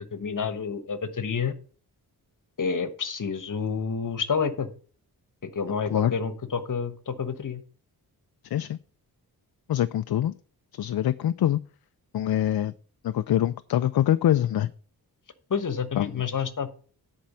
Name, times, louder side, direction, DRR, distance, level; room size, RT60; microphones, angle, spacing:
voice 1, 0.1-1.5 2.6-4.7 5.4-7.6 15.5-16.7, left 6 dB, 55° left, 12 dB, 1.2 m, -29 dB
voice 2, 9.7-10.3 10.7-11.6 12.1-12.7 13.0-14.7 16.0-16.2, left 11 dB, 70° left, 12 dB, 0.5 m, -24 dB
10.5 x 4.6 x 6.8 m, 0.41 s
wide cardioid pair, 95°, 38 cm